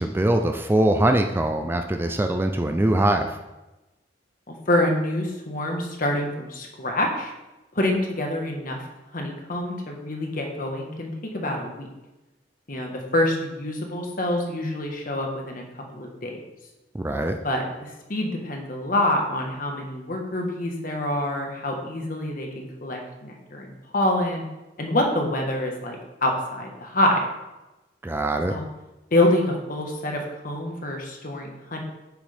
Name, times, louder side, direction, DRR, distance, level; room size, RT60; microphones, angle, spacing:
voice 1, 0.0-3.4 16.9-17.4 28.0-28.5, right 1 dB, 15° right, 5 dB, 0.4 m, -22 dB
voice 2, 4.5-7.3 7.7-8.8 9.1-11.9 12.7-15.7 15.9-16.4 17.4-24.4 24.8-27.2 28.5-28.6 29.1-31.8, left 1 dB, 50° left, 1 dB, 1.3 m, -26 dB
8.1 x 6.1 x 3.5 m, 1.0 s
head